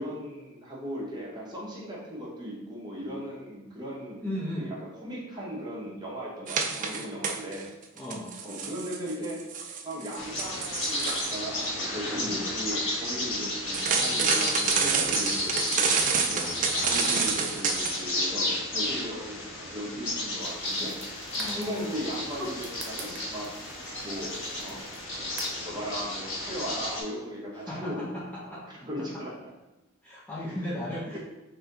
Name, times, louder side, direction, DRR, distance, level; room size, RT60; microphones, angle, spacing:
voice 1, 0.0-4.2 4.6-7.7 8.4-9.4 9.8-16.0 16.3-21.0 21.5-23.5 24.0-24.8 25.1-25.2 25.6-29.3 30.5-30.6 31.1-31.2, equal, 20° right, -4 dB, 1.2 m, -37 dB
voice 2, 4.2-4.7 8.0-8.3 12.1-12.4 21.4-22.0 22.4-22.5 27.5-28.9 30.0-31.2, left 1 dB, 10° left, -6 dB, 0.6 m, -36 dB
sound 1, 6.5-7.6 8.0-11.4 13.7-18.0, right 5 dB, 40° right, 0.4 m, -28 dB
Bird vocalization bird call bird song, 10.2-27.0, left 1 dB, 65° left, 1.4 m, -32 dB
sound 2, 20.4-25.7, right 3 dB, 60° right, 0.9 m, -47 dB
4.0 x 2.8 x 3.9 m, 1.0 s
head